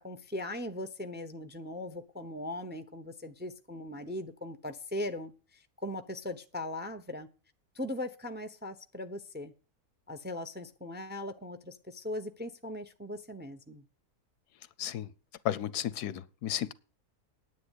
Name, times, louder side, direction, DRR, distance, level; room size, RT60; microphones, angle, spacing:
voice 1, 0.0-7.3 7.7-9.5 10.1-13.8, left 1 dB, 10° right, 0.6 m, -39 dB
voice 2, 14.8-15.1 15.4-16.7, left 12 dB, 85° left, 1.3 m, -33 dB
9.7 x 8.8 x 8.1 m
omnidirectional pair, 1.6 m